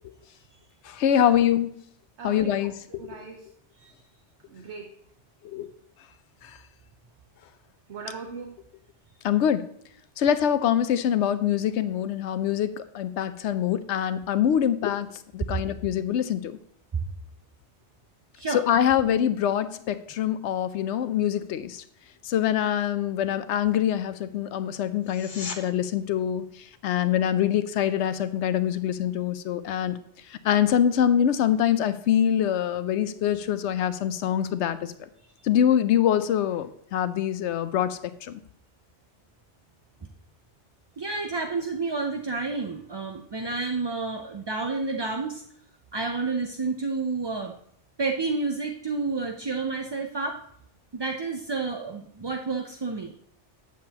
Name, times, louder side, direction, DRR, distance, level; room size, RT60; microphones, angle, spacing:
voice 1, 0.8-1.7 2.2-2.7 5.4-5.7 6.4-6.5 9.2-9.7 10.2-16.6 18.5-21.8 22.2-26.4 26.8-30.0 30.4-34.9 35.4-38.4, left 10 dB, 80° left, 13 dB, 0.9 m, -24 dB
voice 2, 2.2-2.6 2.9-3.5 4.5-4.9 7.9-8.6, right 5 dB, 75° right, 2 dB, 1.2 m, -39 dB
sound 1, 25.0-25.6 37.0-37.1, left 4 dB, 45° left, 0.9 m, -37 dB
voice 3, 41.0-45.4 45.9-47.5 48.0-50.4 50.9-53.1, right 3 dB, 35° right, 3 dB, 0.4 m, -30 dB
8.5 x 7.5 x 2.9 m, 0.67 s
omnidirectional pair, 1.2 m